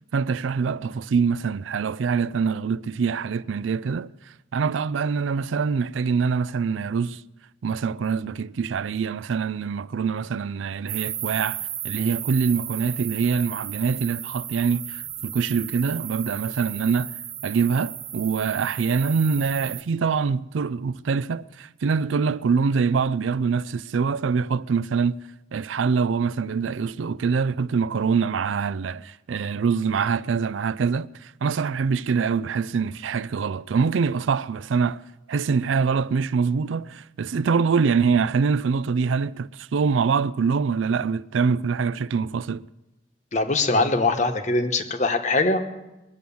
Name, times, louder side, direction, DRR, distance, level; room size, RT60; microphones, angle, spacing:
voice 1, 0.1-4.1 4.5-7.2 7.6-17.1 17.4-25.2 25.5-35.0 35.3-42.7, right 5 dB, 85° right, 0.4 m, -24 dB
sound 1, 10.9-19.8, right 11 dB, 40° right, 0.6 m, -34 dB
voice 2, 43.3-45.6, left 3 dB, 40° left, 1.0 m, -22 dB
20.5 x 7.7 x 7.0 m
head